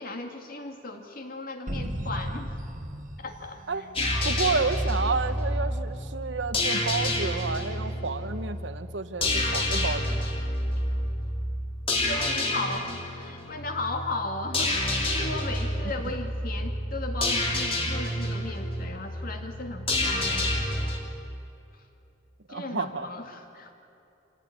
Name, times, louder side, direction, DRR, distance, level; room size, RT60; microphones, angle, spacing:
voice 1, 0.0-2.6 3.2-3.8 12.0-14.8 15.1-20.7 22.5-23.8, left 2 dB, 50° left, 4 dB, 2.5 m, -36 dB
sound 1, 1.7-4.4, equal, 45° right, 1.5 m, -35 dB
sound 2, 4.0-21.0, left 1 dB, 30° left, 3.1 m, -29 dB
voice 2, 4.2-10.3 22.5-23.1, right 4 dB, 80° right, 11 dB, 1.0 m, -30 dB
25.5 x 16.5 x 9.7 m, 2.8 s
head